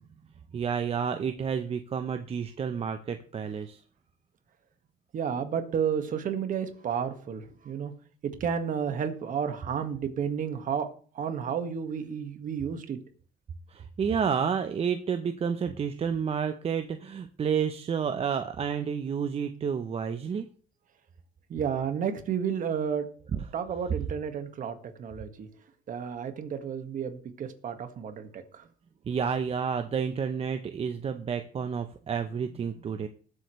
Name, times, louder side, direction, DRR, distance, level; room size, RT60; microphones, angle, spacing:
voice 1, 0.5-3.8 13.7-20.5 23.3-23.4 29.1-33.1, right 7 dB, 35° right, 8 dB, 0.8 m, -30 dB
voice 2, 5.1-7.9 8.2-10.9 11.1-13.0 21.5-23.1 23.5-25.5 25.9-28.7, right 7 dB, 50° right, 8 dB, 1.7 m, -31 dB
20.5 x 8.0 x 3.2 m, 0.43 s
cardioid pair, 110°, 17 cm